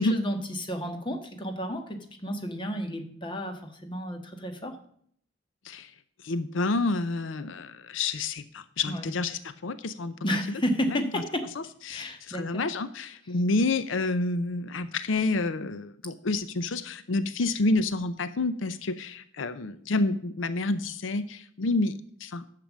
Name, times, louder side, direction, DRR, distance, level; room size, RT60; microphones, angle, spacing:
voice 1, 0.0-4.8 8.9-9.1 10.2-11.5 11.9-12.6, equal, 25° left, 5 dB, 1.4 m, -32 dB
voice 2, 6.2-10.1 10.9-11.0 11.9-21.9 22.2-22.4, left 2 dB, 80° left, 13 dB, 0.6 m, -28 dB
10.5 x 6.8 x 7.2 m, 0.64 s
head